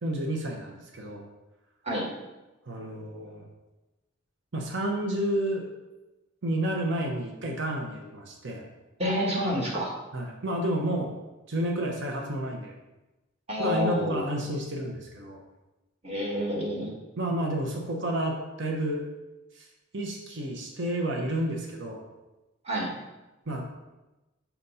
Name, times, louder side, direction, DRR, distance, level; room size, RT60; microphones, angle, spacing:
voice 1, 0.0-1.2 2.7-3.4 4.5-5.7 6.4-8.7 10.1-11.1 11.5-12.7 13.6-15.4 17.2-19.0 19.5-19.7 19.9-22.0 23.5-23.6, right 1 dB, 60° right, 1 dB, 0.9 m, -30 dB
voice 2, 9.0-9.9 13.5-14.2 16.0-16.9 22.6-22.9, equal, 30° right, -2 dB, 1.4 m, -28 dB
5.8 x 4.1 x 5.5 m, 1.0 s
head